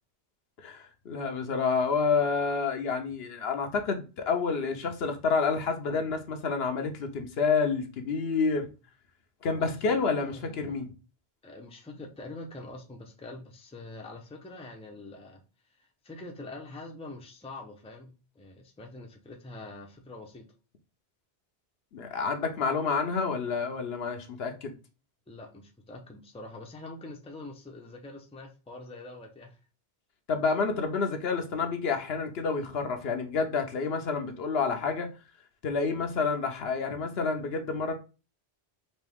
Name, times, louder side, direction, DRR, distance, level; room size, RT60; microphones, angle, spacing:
voice 1, 0.6-8.7 9.4-10.9 21.9-24.7 30.3-35.1 35.6-37.9, left 5 dB, 70° left, 1.0 m, -29 dB
voice 2, 9.6-10.7 11.4-15.4 15.8-20.5 25.3-29.6, left 2 dB, 5° left, 0.6 m, -45 dB
4.2 x 2.7 x 3.4 m
omnidirectional pair, 1.1 m